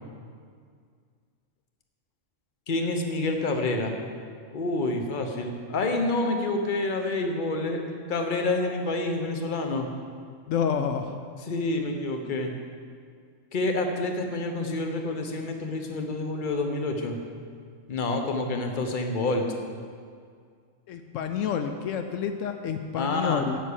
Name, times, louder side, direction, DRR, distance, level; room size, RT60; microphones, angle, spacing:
voice 1, 2.7-3.9 4.5-7.8 8.1-9.9 11.4-12.5 13.5-17.2 17.9-19.5 22.9-23.4, left 2 dB, 40° left, 4 dB, 1.1 m, -28 dB
voice 2, 10.5-11.2 20.9-23.6, left 7 dB, 80° left, 7 dB, 0.9 m, -29 dB
8.2 x 7.2 x 8.3 m, 2.1 s
omnidirectional pair, 1.3 m